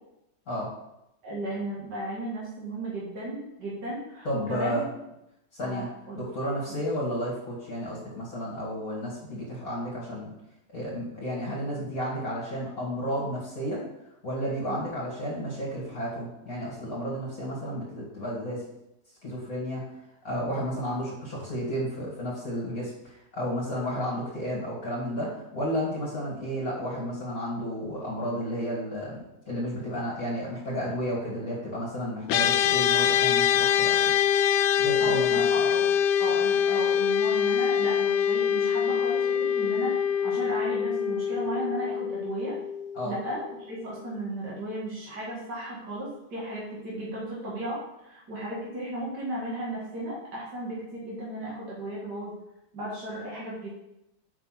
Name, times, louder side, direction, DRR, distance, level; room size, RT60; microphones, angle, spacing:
voice 1, 1.2-4.8 5.6-6.2 14.6-14.8 35.0-42.5 43.0-52.3 52.7-53.7, right 1 dB, 75° right, -6 dB, 2.6 m, -35 dB
voice 2, 4.2-4.8 5.5-5.9 6.1-10.3 10.7-13.8 14.2-18.6 19.2-19.9 20.2-34.1 34.8-35.4 42.9-43.1, equal, 55° left, -6 dB, 2.7 m, -32 dB
sound 1, 32.3-43.8, left 8 dB, 80° left, 1.2 m, -24 dB
7.4 x 5.7 x 5.9 m, 0.87 s
omnidirectional pair, 1.8 m